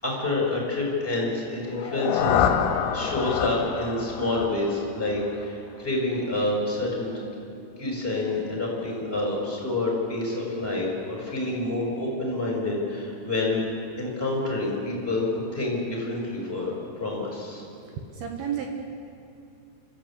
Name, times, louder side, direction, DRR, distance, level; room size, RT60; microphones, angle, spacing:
voice 1, 0.0-7.2 7.8-13.6 14.0-17.6, left 2 dB, 10° left, -2 dB, 4.9 m, -28 dB
sound 1, 1.6-5.6, left 8 dB, 75° left, 3.6 m, -27 dB
voice 2, 18.0-18.7, right 8 dB, 70° right, 3 dB, 2.6 m, -31 dB
27.0 x 14.5 x 8.6 m, 2.5 s
omnidirectional pair, 5.6 m